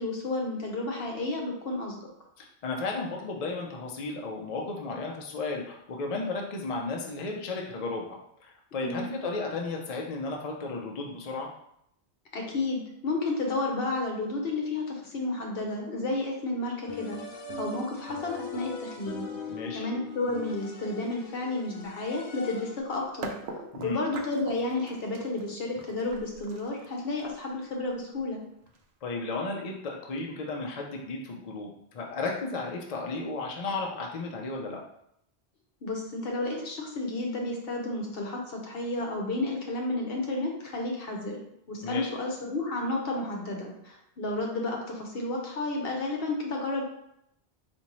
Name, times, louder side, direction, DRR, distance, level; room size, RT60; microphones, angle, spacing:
voice 1, 0.0-1.9 8.8-9.1 12.3-17.2 17.6-19.3 19.7-23.3 23.8-28.4 35.8-41.4 41.7-46.8, left 2 dB, 65° left, 0 dB, 1.0 m, -31 dB
voice 2, 2.4-11.5 19.5-19.9 23.7-24.0 29.0-34.8 41.8-42.1, left 3 dB, 50° left, 0 dB, 0.5 m, -34 dB
sound 1, 16.9-23.0, left 4 dB, 85° left, 0.9 m, -40 dB
sound 2, 22.8-22.9 23.2-29.1, right 4 dB, 70° right, 0.8 m, -43 dB
4.2 x 2.6 x 3.0 m, 0.75 s
omnidirectional pair, 1.1 m